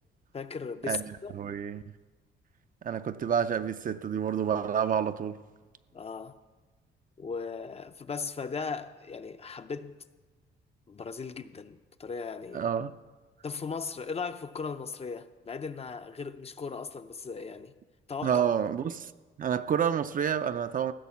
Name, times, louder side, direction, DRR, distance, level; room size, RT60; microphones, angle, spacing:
voice 1, 0.3-1.3 5.9-6.4 7.2-10.0 10.9-12.7 13.4-17.7 18.1-18.4, left 5 dB, 30° left, 0.5 m, -37 dB
voice 2, 0.9-1.8 2.8-5.4 12.5-12.9 18.2-19.1 19.4-20.9, right 8 dB, 45° right, 0.5 m, -29 dB
15.0 x 6.2 x 7.2 m
cardioid pair, 90°, 20 cm